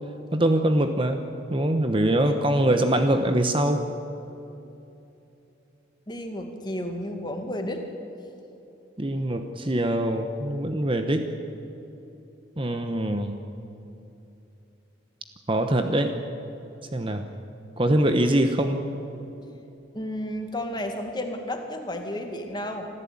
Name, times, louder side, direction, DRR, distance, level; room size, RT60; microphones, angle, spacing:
voice 1, 0.3-1.2 1.5-3.8 9.0-11.3 12.6-13.3 15.5-16.2 16.9-17.3 17.8-18.8, right 1 dB, 25° right, 7 dB, 0.9 m, -23 dB
voice 2, 6.1-7.8 19.9-22.9, left 1 dB, 20° left, 4 dB, 2.0 m, -32 dB
26.5 x 14.5 x 8.7 m, 2.9 s
head